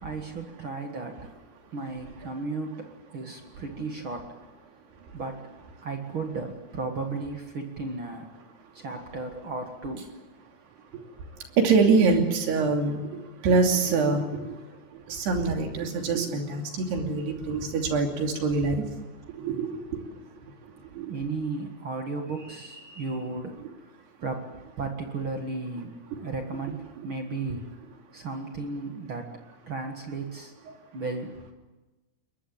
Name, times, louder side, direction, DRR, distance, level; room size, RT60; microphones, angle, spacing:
voice 1, 0.0-1.2 1.7-4.4 5.1-5.4 5.8-8.3 8.7-10.1 21.1-23.6 24.2-24.5 24.8-27.7 28.1-29.3 29.7-30.5 30.9-31.5, right 3 dB, 45° right, 4 dB, 1.8 m, -34 dB
voice 2, 11.6-13.0 13.4-14.4 15.1-18.8 19.4-19.7 21.0-21.1, right 4 dB, 80° right, 3 dB, 4.9 m, -24 dB
22.0 x 21.5 x 8.8 m, 1.2 s
omnidirectional pair, 4.7 m